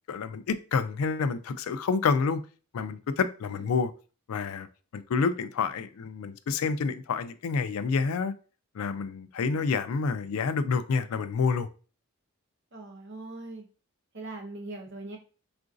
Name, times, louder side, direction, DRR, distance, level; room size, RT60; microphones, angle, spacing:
voice 1, 0.1-2.4 2.7-3.9 4.3-4.7 4.9-8.3 8.8-11.7, left 5 dB, 80° left, 0.4 m, -28 dB
voice 2, 12.7-13.7 14.1-15.2, right 2 dB, 55° right, 0.9 m, -41 dB
3.8 x 2.5 x 2.5 m
head